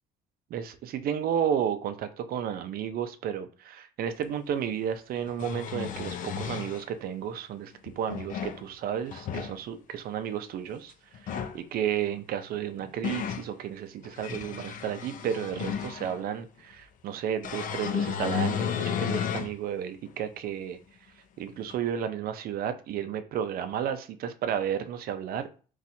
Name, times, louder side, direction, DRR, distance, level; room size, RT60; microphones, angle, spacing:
voice 1, 0.5-20.8 21.4-25.5, right 9 dB, 60° right, 10 dB, 0.5 m, -32 dB
sound 1, 4.2-4.3 5.2-6.8 7.9-8.6 9.1-9.5 11.1-11.6 12.5-13.5 14.0-16.2 17.4-19.5 20.1-20.2 21.7-21.8, left 8 dB, 50° left, 0.4 m, -33 dB
4.1 x 2.3 x 2.6 m, 0.38 s
cardioid pair, 110°, 17 cm